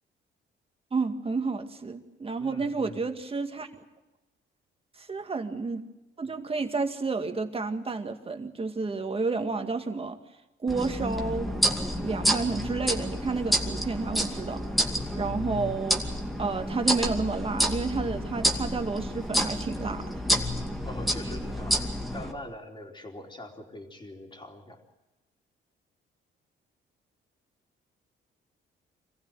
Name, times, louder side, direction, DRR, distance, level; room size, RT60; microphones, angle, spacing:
voice 1, 0.9-3.7 5.0-5.8 6.2-10.2 10.6-11.5 11.9-14.6 15.2-16.0 16.4-20.2, right 4 dB, 30° right, 6 dB, 2.1 m, -30 dB
voice 2, 2.4-3.0 20.8-21.8 22.1-24.8, left 1 dB, 25° left, 1 dB, 4.3 m, -42 dB
sound 1, 10.7-22.3, equal, ahead, 2.4 m, -29 dB
25.0 x 15.5 x 9.2 m, 1.0 s
cardioid pair, 90°, 20 cm